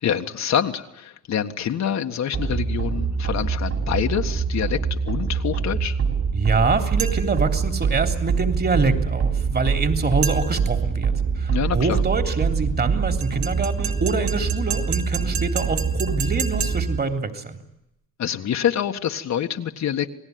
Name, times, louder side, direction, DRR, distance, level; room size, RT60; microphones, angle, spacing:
voice 1, 0.0-6.0 11.5-12.0 18.2-20.1, left 9 dB, 65° left, 5 dB, 1.7 m, -26 dB
sound 1, 2.3-17.0, right 6 dB, 55° right, 7.2 m, -24 dB
voice 2, 6.3-17.6, right 3 dB, 30° right, 6 dB, 3.3 m, -25 dB
sound 2, 7.0-7.4 10.2-10.7 13.2-17.0, right 7 dB, 70° right, 3.4 m, -32 dB
28.5 x 19.5 x 9.5 m, 0.84 s
cardioid pair, 90°, 30 cm